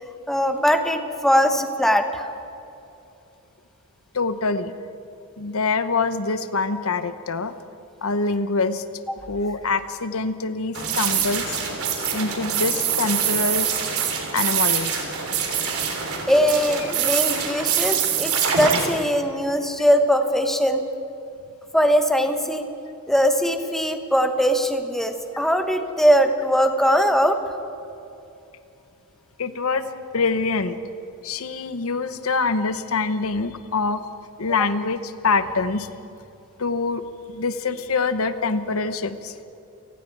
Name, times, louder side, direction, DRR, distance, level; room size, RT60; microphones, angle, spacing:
voice 1, 0.3-2.3 16.3-20.8 21.7-22.7 23.1-27.4, equal, ahead, 6 dB, 1.1 m, -20 dB
voice 2, 4.1-4.7 5.4-7.5 8.0-8.8 9.3-11.6 12.1-13.7 14.3-15.1 29.4-30.8 31.2-34.0 34.4-35.9 36.6-39.3, left 4 dB, 75° left, 11 dB, 0.9 m, -25 dB
sound 1, 10.7-18.9, right 7 dB, 80° right, 3.4 m, -24 dB
29.5 x 19.0 x 4.7 m, 2.7 s
head